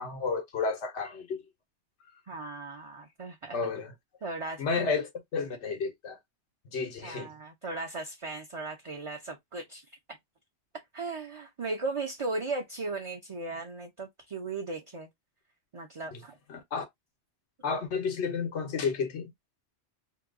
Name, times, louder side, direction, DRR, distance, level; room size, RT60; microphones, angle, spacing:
voice 1, 0.0-1.4 3.5-3.9 4.6-6.2 6.7-7.3 16.1-16.2 16.5-16.9 17.6-19.3, left 5 dB, 90° left, 1.2 m, -31 dB
voice 2, 2.3-3.6 4.2-4.9 7.0-9.8 10.9-15.1 15.7-16.3, right 3 dB, 35° right, 0.6 m, -37 dB
2.9 x 2.3 x 3.5 m
omnidirectional pair, 1.1 m